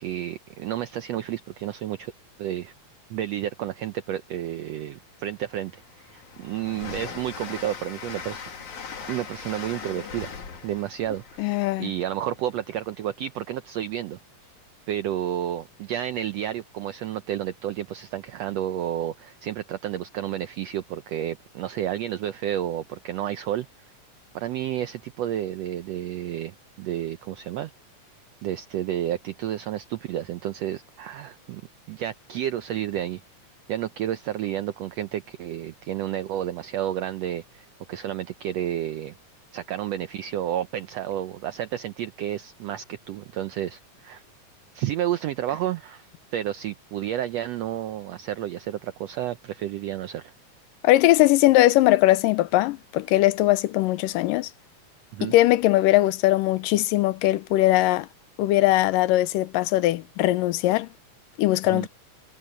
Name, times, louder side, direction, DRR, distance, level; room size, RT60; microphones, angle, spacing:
voice 1, 0.0-2.1 2.4-2.7 3.1-8.4 9.1-10.3 10.6-14.2 14.9-23.7 24.3-27.7 28.4-31.6 31.9-33.2 33.7-39.1 39.5-44.2 44.7-50.3 55.1-55.3 61.7-61.9, right 11 dB, 85° right, 1.4 m, -31 dB
Train, 4.7-4.8 5.2-12.9, left 6 dB, 65° left, 4.3 m, -40 dB
voice 2, 11.4-11.9 50.8-54.5 55.2-58.1 58.4-60.9 61.4-61.9, left 16 dB, 85° left, 2.4 m, -20 dB
omnidirectional pair, 3.8 m